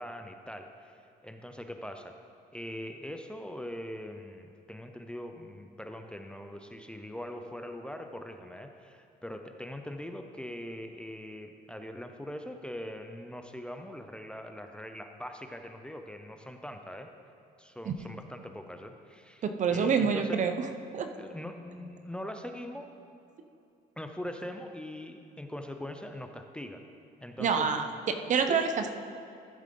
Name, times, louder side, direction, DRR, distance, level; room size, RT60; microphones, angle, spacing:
voice 1, 0.0-2.1 2.5-17.1 17.6-20.5 21.1-22.9 24.0-26.8 27.2-27.9 28.5-28.6, left 1 dB, 5° left, 5 dB, 0.5 m, -42 dB
voice 2, 19.4-20.5 20.9-21.1 27.4-28.9, right 6 dB, 45° right, 7 dB, 0.7 m, -27 dB
13.5 x 7.3 x 3.8 m, 2.7 s
cardioid pair, 110°, 17 cm